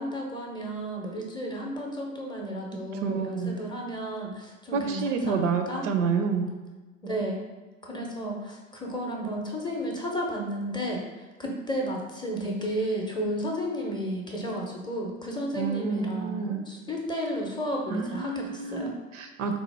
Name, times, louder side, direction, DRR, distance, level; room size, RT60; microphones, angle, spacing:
voice 1, 0.0-5.9 7.0-7.4 7.8-11.0 11.4-18.9, equal, 10° left, -1 dB, 0.6 m, -32 dB
voice 2, 3.0-3.6 4.7-6.5 15.5-16.6 17.9-19.6, right 5 dB, 70° right, 5 dB, 0.5 m, -29 dB
3.9 x 2.0 x 3.2 m, 1.3 s
figure-of-eight pair, 65°, 39 cm